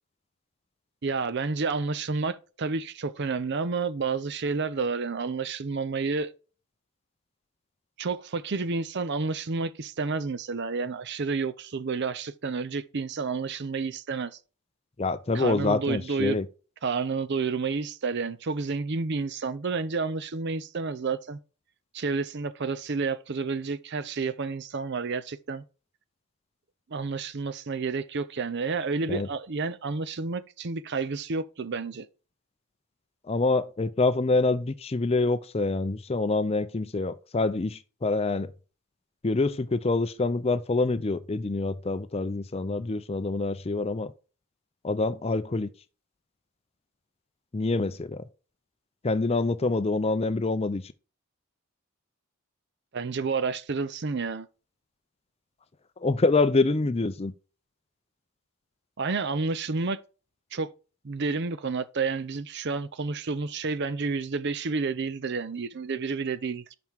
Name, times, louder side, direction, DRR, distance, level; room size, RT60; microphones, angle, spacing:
voice 1, 1.0-6.3 8.0-14.3 15.3-16.4 16.8-21.4 21.9-25.6 26.9-32.1 52.9-54.5 59.0-60.0 60.5-60.7 61.0-66.7, right 4 dB, 50° right, 0.5 m, -30 dB
voice 2, 15.0-16.4 29.1-29.3 33.3-38.5 39.2-44.1 44.8-45.7 47.5-48.2 49.0-50.8 56.0-57.3, left 3 dB, 25° left, 0.4 m, -26 dB
5.9 x 5.4 x 4.6 m
head